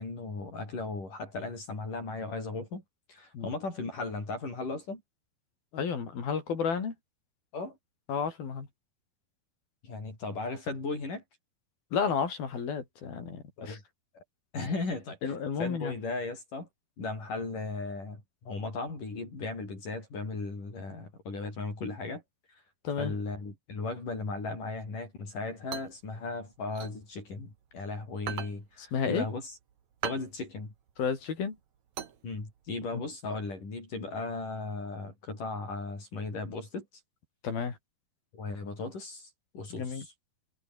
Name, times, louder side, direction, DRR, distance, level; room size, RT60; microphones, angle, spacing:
voice 1, 0.0-2.8 3.1-5.0 7.5-7.8 9.8-11.2 13.6-13.8 14.1-14.2 14.5-16.7 17.0-22.2 22.5-22.6 23.0-29.6 30.0-30.7 32.2-36.9 38.3-39.3 39.5-40.1, left 3 dB, 60° left, 9.6 m, -36 dB
voice 2, 5.7-6.9 8.1-8.7 11.9-13.8 15.2-15.9 22.8-23.1 28.9-29.3 31.0-31.6 32.9-33.0 37.4-37.7 39.7-40.0, left 6 dB, 85° left, 6.3 m, -31 dB
sound 1, 25.3-27.8 28.1-32.8, right 8 dB, 55° right, 3.2 m, -41 dB
omnidirectional pair, 4.1 m